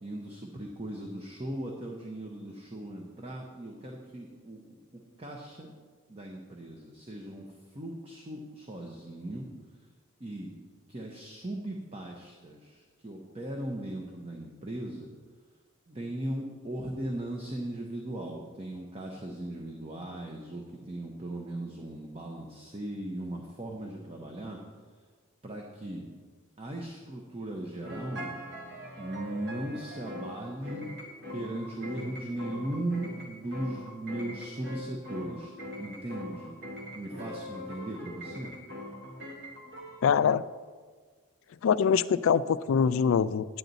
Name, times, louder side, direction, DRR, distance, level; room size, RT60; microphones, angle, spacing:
voice 1, 0.0-4.7 4.9-5.7 6.1-9.5 10.2-10.5 10.9-15.1 15.9-24.6 25.4-26.1 26.6-28.3 29.0-30.9 31.3-36.5 36.9-38.5, right 1 dB, 25° right, 0 dB, 0.8 m, -38 dB
sound 1, 27.8-40.2, left 1 dB, 55° right, 1.4 m, -42 dB
voice 2, 40.0-40.4 41.6-43.5, left 7 dB, 70° left, 16 dB, 0.3 m, -24 dB
9.1 x 9.1 x 4.0 m, 1.5 s
head